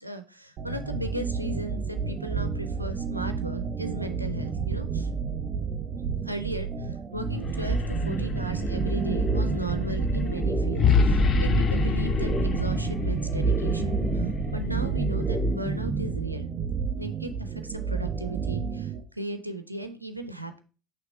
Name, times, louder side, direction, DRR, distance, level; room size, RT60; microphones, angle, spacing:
voice 1, 0.0-5.1 6.2-16.5 17.0-20.6, right 1 dB, 90° right, 8 dB, 0.4 m, -36 dB
Claustrophobia - Supercollider, 0.6-19.0, right 5 dB, 40° right, 1.1 m, -31 dB
sound 1, 7.4-15.5, left 6 dB, 40° left, 0.6 m, -29 dB
sound 2, 8.0-16.1, right 2 dB, 20° left, 3.0 m, -29 dB
5.8 x 3.4 x 5.0 m, 0.35 s
figure-of-eight pair, 65°, 0 cm